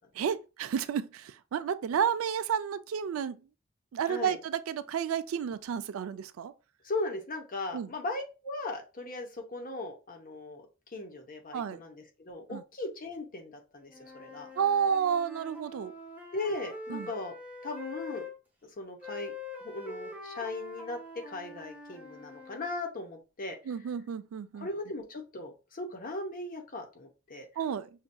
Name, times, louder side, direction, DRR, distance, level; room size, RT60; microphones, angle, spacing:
voice 1, 0.1-3.4 3.9-6.5 7.7-7.9 11.5-11.8 12.5-12.6 14.6-15.9 16.9-17.1 23.7-24.7 27.6-27.9, right 7 dB, 85° right, 0.3 m, -31 dB
voice 2, 4.1-4.4 6.8-10.7 10.9-14.5 16.3-17.3 17.6-18.3 18.8-19.3 19.6-21.0 21.3-23.6 24.5-27.5, left 2 dB, 45° left, 0.8 m, -38 dB
Wind instrument woodwind instrument, 13.9-18.3 19.0-22.7, left 3 dB, 10° right, 0.7 m, -44 dB
5.6 x 2.6 x 2.2 m
head